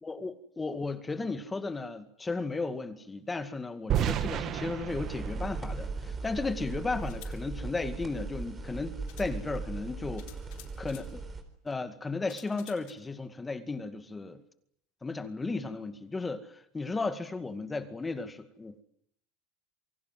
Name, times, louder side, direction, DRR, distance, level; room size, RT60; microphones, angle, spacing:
voice 1, 0.0-10.3 10.8-11.2 11.6-14.4 15.0-18.8, left 3 dB, 10° left, 2.1 m, -35 dB
sound 1, 3.9-6.9, right 10 dB, 35° right, 1.7 m, -33 dB
sound 2, 4.9-11.4, right 3 dB, 20° right, 4.2 m, -38 dB
sound 3, 6.0-6.1 7.0-7.4 8.5-8.6 9.1-9.3 10.2-11.1 12.3-12.9, left 15 dB, 65° left, 6.7 m, -52 dB
29.0 x 24.5 x 7.7 m
supercardioid pair, 150°, 0 cm